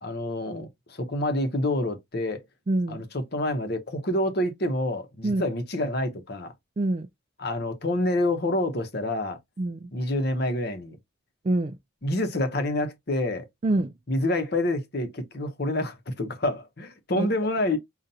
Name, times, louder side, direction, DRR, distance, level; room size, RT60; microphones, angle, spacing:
voice 1, 0.0-2.4 2.9-6.5 7.4-9.4 9.9-11.0 12.0-13.5 14.1-17.8, left 1 dB, 50° left, 0.8 m, -27 dB
voice 2, 2.7-3.0 5.2-5.4 6.8-7.1 9.6-9.9 11.4-11.8 13.6-13.9 17.2-17.3, right 2 dB, 30° right, 0.3 m, -25 dB
5.3 x 2.4 x 2.7 m
head